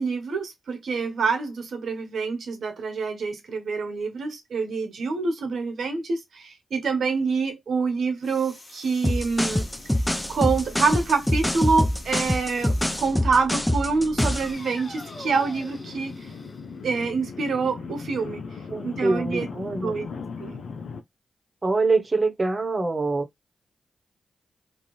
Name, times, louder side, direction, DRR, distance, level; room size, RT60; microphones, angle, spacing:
voice 1, 0.0-9.7 10.3-16.2 16.8-18.5 18.8-19.5 19.8-20.1 20.4-20.6, right 4 dB, 75° right, 0.9 m, -26 dB
sound 1, 8.2-13.2 14.3-17.2, left 2 dB, 35° left, 1.2 m, -46 dB
sound 2, 9.0-14.5, left 1 dB, 10° left, 0.5 m, -24 dB
sound 3, 9.6-21.0, left 5 dB, 75° left, 0.5 m, -40 dB
voice 2, 18.7-19.9 21.6-23.3, right 3 dB, 40° right, 0.9 m, -24 dB
2.6 x 2.3 x 3.0 m
supercardioid pair, 40°, 0 cm